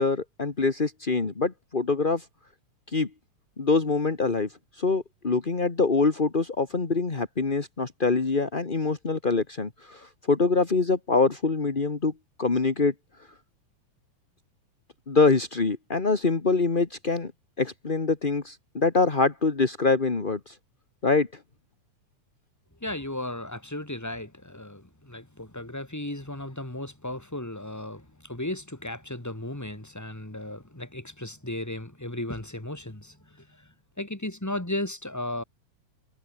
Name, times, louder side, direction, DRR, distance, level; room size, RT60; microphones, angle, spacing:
voice 1, 0.0-2.2 2.9-3.1 3.6-4.5 4.8-12.1 12.4-12.9 15.1-17.3 17.6-20.6 21.0-21.3, left 4 dB, 30° left, 0.9 m, -24 dB
voice 2, 22.8-33.7 34.0-35.4, left 1 dB, 5° left, 2.5 m, -35 dB
omnidirectional pair, 3.8 m